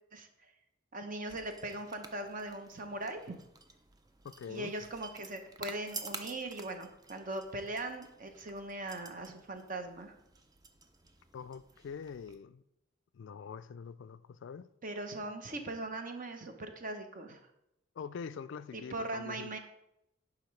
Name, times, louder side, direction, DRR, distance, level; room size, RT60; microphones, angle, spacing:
voice 1, 0.9-3.3 4.5-10.1 14.8-17.4 18.7-19.6, right 2 dB, 40° right, 0.8 m, -40 dB
sound 1, 1.3-12.4, right 4 dB, 20° right, 0.5 m, -51 dB
voice 2, 4.2-4.7 11.3-12.6 13.1-14.7 18.0-19.6, left 6 dB, 65° left, 0.3 m, -44 dB
10.5 x 4.9 x 3.2 m
head